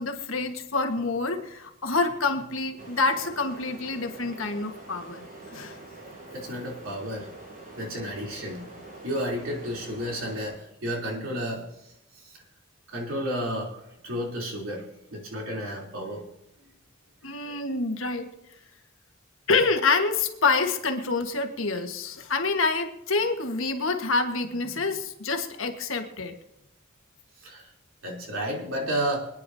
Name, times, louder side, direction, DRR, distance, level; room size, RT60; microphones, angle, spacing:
voice 1, 0.0-5.2 5.5-5.7 17.2-18.3 19.5-26.3, left 3 dB, 85° left, 5 dB, 1.5 m, -27 dB
sound 1, 2.8-10.5, right 2 dB, 45° right, 5.6 m, -45 dB
voice 2, 6.3-7.3 7.8-8.7 9.0-11.6 12.9-16.2 17.4-17.6 27.4-27.7 28.0-29.2, equal, 85° right, -2 dB, 3.4 m, -32 dB
25.5 x 9.8 x 2.8 m, 0.87 s
head